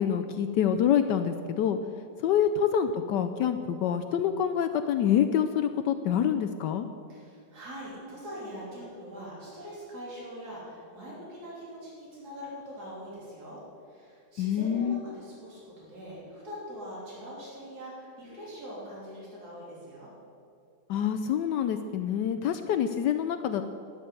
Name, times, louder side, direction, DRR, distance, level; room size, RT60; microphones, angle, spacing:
voice 1, 0.0-1.8 2.2-6.9 14.4-15.0 20.9-23.6, left 9 dB, 75° left, 8 dB, 1.1 m, -26 dB
voice 2, 7.1-20.1, equal, 55° right, -6 dB, 3.8 m, -43 dB
11.5 x 6.7 x 9.4 m, 2.3 s
omnidirectional pair, 2.0 m